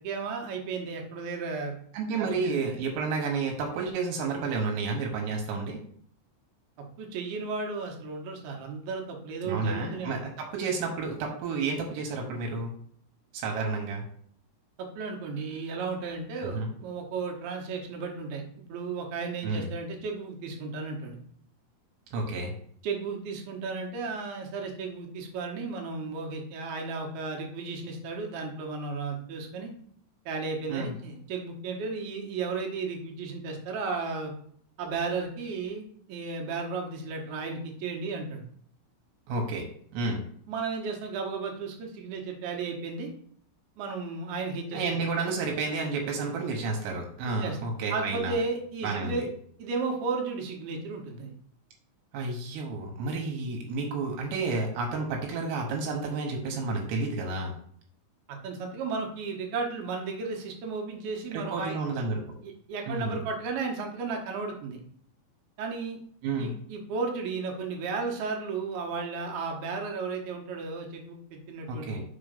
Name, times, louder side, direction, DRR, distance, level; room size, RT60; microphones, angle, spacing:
voice 1, 0.0-1.7 2.2-2.6 7.0-10.2 14.8-18.4 18.7-21.2 22.8-29.7 30.3-34.3 34.8-38.4 39.5-39.6 40.5-43.1 43.8-44.8 45.1-45.2 47.4-47.6 47.9-49.3 49.6-51.3 58.3-61.8 62.4-64.8 65.6-66.0 66.4-72.0, right 4 dB, 70° right, 1 dB, 2.8 m, -34 dB
voice 2, 1.9-5.8 9.4-12.7 13.3-14.0 16.5-16.7 19.4-19.7 22.1-22.5 30.7-30.9 39.3-39.6 39.9-40.2 44.7-48.4 48.8-49.2 52.1-57.5 61.3-62.4 62.9-63.2 66.2-66.5 71.7-72.0, right 3 dB, 85° right, 2 dB, 3.2 m, -31 dB
5.1 x 5.0 x 5.1 m, 0.62 s
omnidirectional pair, 5.0 m